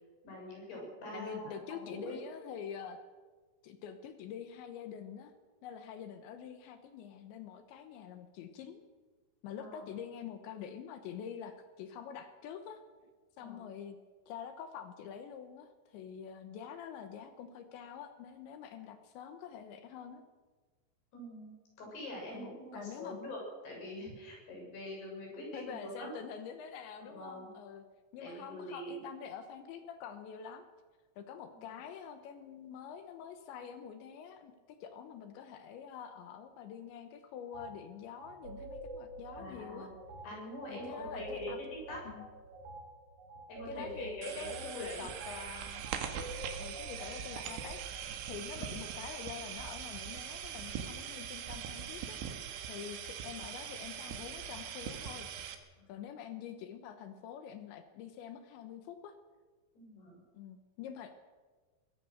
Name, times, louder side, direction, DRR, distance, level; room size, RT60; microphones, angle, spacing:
voice 1, 0.2-2.2 9.6-9.9 13.4-13.7 21.1-26.1 27.0-27.5 28.2-29.0 31.5-31.6 39.4-39.9 40.2-42.0 43.5-45.1 52.7-52.9 55.8-55.9 59.7-60.2, left 1 dB, 55° left, -1 dB, 8.4 m, -44 dB
voice 2, 1.1-3.0 3.6-5.3 5.6-8.8 9.4-12.8 13.4-14.0 14.3-20.2 22.3-23.2 25.5-27.8 28.1-30.7 31.2-34.5 34.8-39.9 40.7-41.6 42.0-42.3 43.7-45.9 46.6-47.8 48.3-55.3 55.9-59.2 60.3-61.3, left 8 dB, 75° left, 9 dB, 3.2 m, -46 dB
sound 1, 37.5-37.7 38.2-47.9, right 2 dB, 40° right, 4.3 m, -47 dB
sound 2, 44.2-55.6, right 8 dB, 75° right, 3.9 m, -42 dB
22.0 x 18.0 x 6.6 m, 1.4 s
omnidirectional pair, 5.7 m